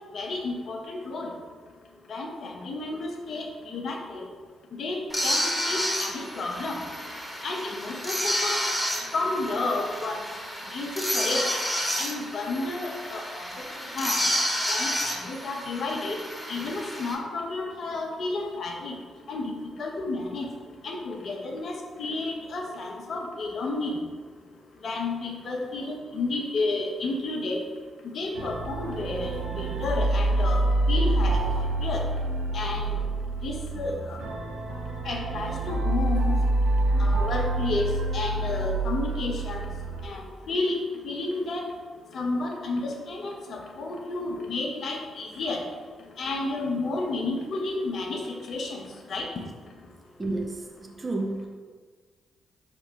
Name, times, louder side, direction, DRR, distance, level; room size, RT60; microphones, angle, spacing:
voice 1, 0.1-1.3 2.1-4.2 4.8-6.8 7.4-8.2 8.4-8.5 9.1-10.2 10.7-11.5 12.0-13.5 13.9-14.2 14.7-16.2 16.5-19.0 19.3-19.5 19.8-20.5 20.8-24.0 24.8-27.7 28.1-30.6 30.9-32.0 32.5-33.0 33.4-34.2 35.0-36.3 37.0-39.6 40.0-40.8 41.0-41.6 42.1-45.6 46.2-48.2 48.5-49.3, left 2 dB, 60° left, 1 dB, 0.7 m, -31 dB
sound 1, 5.1-17.1, equal, 10° left, 1.1 m, -30 dB
sound 2, 28.3-40.1, right 2 dB, 85° right, 0.7 m, -27 dB
voice 2, 50.2-51.5, right 2 dB, 30° right, 2 dB, 0.6 m, -31 dB
4.6 x 2.9 x 3.4 m, 1.5 s
hypercardioid pair, 45°, 0 cm